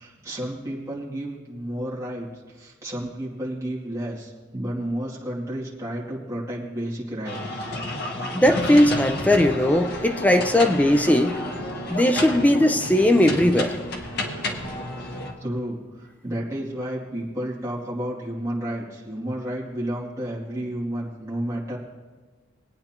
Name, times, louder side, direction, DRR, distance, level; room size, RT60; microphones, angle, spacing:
voice 1, 0.0-7.6 15.4-21.8, right 1 dB, 15° right, -6 dB, 2.6 m, -31 dB
sound 1, 7.2-15.3, left 1 dB, 55° left, 1.5 m, -31 dB
voice 2, 8.3-11.4 11.9-13.8, left 1 dB, 5° left, 6 dB, 0.6 m, -18 dB
23.0 x 9.3 x 3.0 m, 1.4 s
head